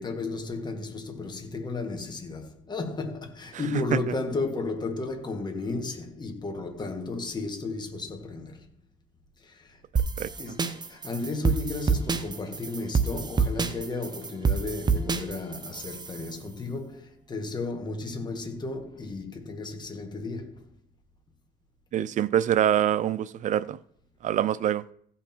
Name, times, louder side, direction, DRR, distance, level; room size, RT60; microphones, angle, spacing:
voice 1, 0.0-8.7 9.4-9.8 10.4-20.7, left 3 dB, 25° left, 1.9 m, -34 dB
sound 1, 10.0-16.3, right 5 dB, 25° right, 0.8 m, -27 dB
voice 2, 21.9-23.8 24.2-24.8, right 11 dB, 50° right, 0.5 m, -25 dB
15.5 x 5.8 x 4.5 m
cardioid pair, 110°, 17 cm